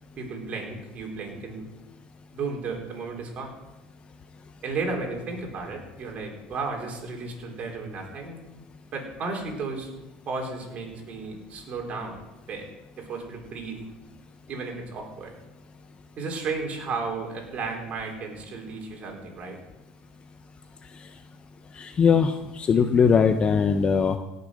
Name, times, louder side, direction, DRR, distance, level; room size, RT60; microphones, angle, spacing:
voice 1, 0.2-1.7 2.3-3.5 4.6-8.4 8.9-9.9 10.3-12.2 12.5-12.7 13.0-13.8 14.5-15.3 16.2-19.6, right 4 dB, 40° right, 1 dB, 4.2 m, -33 dB
voice 2, 21.7-24.2, left 6 dB, 30° left, 8 dB, 0.8 m, -20 dB
17.0 x 6.8 x 6.4 m, 0.99 s
supercardioid pair, 105°, 3 cm